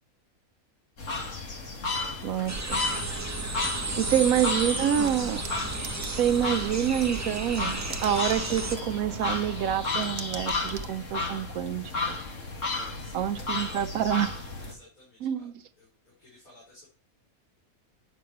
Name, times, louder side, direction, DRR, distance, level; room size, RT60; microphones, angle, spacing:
sound 1, 1.0-14.7, left 3 dB, 60° left, 2.2 m, -33 dB
voice 1, 2.2-2.8 4.0-5.4 6.1-12.2 13.1-14.4 15.2-15.5, right 10 dB, 75° right, 1.0 m, -27 dB
sound 2, 2.5-8.8, right 2 dB, 15° right, 0.6 m, -34 dB
voice 2, 3.8-4.3 12.9-13.9 14.6-15.5 15.8-16.9, left 1 dB, 85° left, 5.0 m, -54 dB
sound 3, 5.0-11.0, right 5 dB, 55° right, 1.0 m, -43 dB
9.3 x 6.8 x 4.5 m
omnidirectional pair, 1.5 m